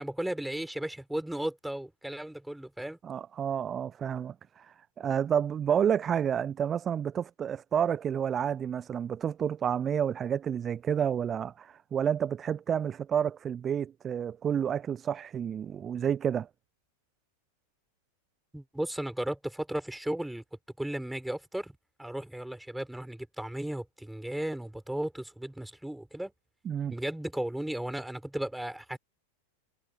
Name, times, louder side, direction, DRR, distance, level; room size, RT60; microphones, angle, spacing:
voice 1, 0.0-3.0 18.5-20.4 20.8-26.3 26.9-29.0, right 1 dB, 5° right, 4.9 m, -35 dB
voice 2, 3.0-16.5 26.7-26.9, right 8 dB, 25° right, 0.5 m, -30 dB
figure-of-eight pair, 90°, 0 cm